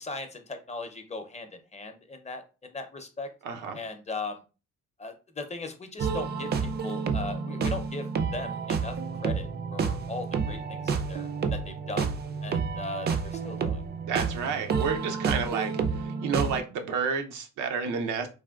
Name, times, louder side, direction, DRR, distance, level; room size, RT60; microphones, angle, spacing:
voice 1, 0.0-3.3 3.7-4.4 5.0-9.0 9.2-13.8, left 3 dB, 25° left, 0.5 m, -38 dB
voice 2, 3.4-3.8 14.1-18.3, right 5 dB, 85° right, 0.6 m, -30 dB
sound 1, 6.0-16.6, right 5 dB, 35° right, 0.4 m, -30 dB
3.4 x 2.1 x 2.3 m
cardioid pair, 90°, 30 cm